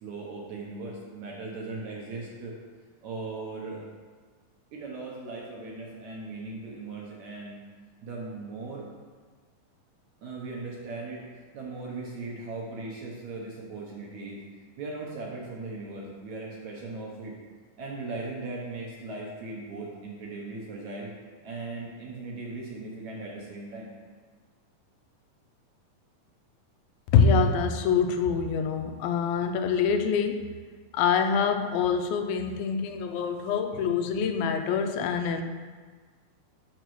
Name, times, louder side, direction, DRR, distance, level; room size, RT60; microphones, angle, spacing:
voice 1, 0.0-2.5 3.0-3.8 4.7-7.6 8.0-8.9 10.2-14.4 14.8-17.4 17.8-21.1 21.4-23.9, right 3 dB, 70° right, -3 dB, 1.9 m, -38 dB
voice 2, 27.1-30.5 30.9-35.4, left 6 dB, 85° left, 6 dB, 2.4 m, -25 dB
9.1 x 6.6 x 3.1 m, 1.5 s
omnidirectional pair, 4.2 m